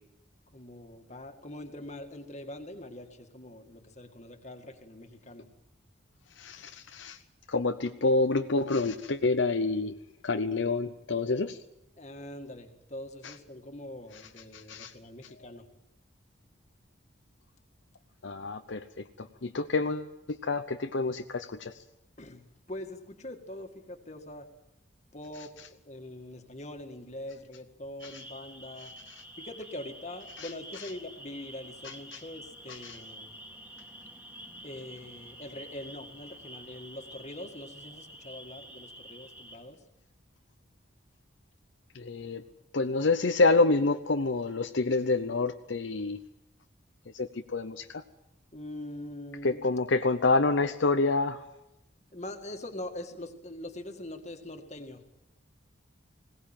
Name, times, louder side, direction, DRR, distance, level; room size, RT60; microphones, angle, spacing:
voice 1, 0.5-5.5 12.0-15.7 22.2-24.5 25.1-28.9 29.4-33.3 34.6-39.8 48.5-49.7 52.1-55.0, left 1 dB, 35° left, 6 dB, 2.0 m, -43 dB
voice 2, 6.4-7.2 7.5-9.9 10.2-11.6 13.2-13.3 14.5-14.9 18.2-18.8 19.2-21.7 30.4-30.5 32.1-32.2 32.7-33.0 41.9-42.4 42.7-46.2 47.1-48.0 49.4-51.4, left 3 dB, 70° left, 7 dB, 0.8 m, -28 dB
sound 1, 28.0-39.6, right 1 dB, 10° right, 2.4 m, -48 dB
20.5 x 18.0 x 9.0 m, 0.90 s
head